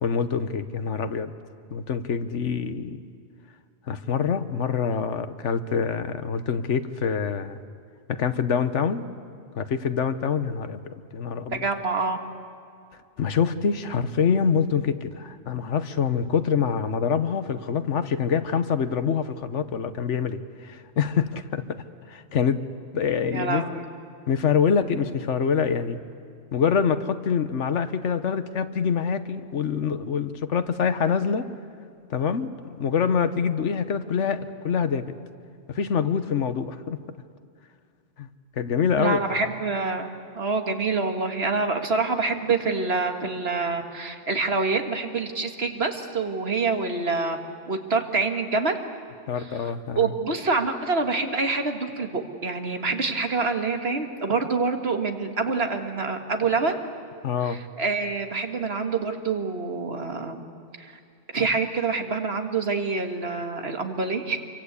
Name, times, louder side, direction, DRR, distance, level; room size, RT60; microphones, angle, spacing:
voice 1, 0.0-1.3 1.7-3.0 3.9-7.6 8.1-9.1 9.6-11.6 13.2-21.6 22.1-22.6 22.9-23.6 24.3-26.0 26.5-31.5 32.1-32.5 32.8-35.1 35.7-37.0 38.2-38.3 38.6-39.5 49.3-50.1 57.2-57.6, left 6 dB, 80° left, 11 dB, 1.4 m, -25 dB
voice 2, 11.5-12.2 23.3-23.8 39.0-40.1 40.3-47.4 47.7-48.8 49.4-56.8 57.4-60.4 60.8-60.9 61.3-64.4, right 4 dB, 60° right, 5 dB, 2.0 m, -26 dB
27.0 x 24.0 x 8.3 m, 2.3 s
omnidirectional pair, 1.2 m